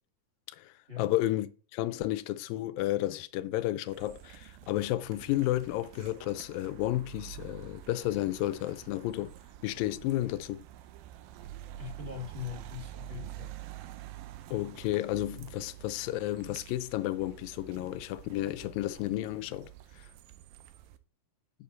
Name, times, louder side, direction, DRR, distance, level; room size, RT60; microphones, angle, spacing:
voice 1, 0.5-1.5 1.7-9.4 9.6-10.7 14.5-20.1, left 15 dB, 85° left, 2.3 m, -32 dB
sound 1, 3.9-21.0, right 13 dB, 85° right, 2.5 m, -48 dB
voice 2, 11.8-13.6, left 9 dB, 25° right, 1.6 m, -41 dB
8.6 x 6.9 x 4.0 m
omnidirectional pair, 4.0 m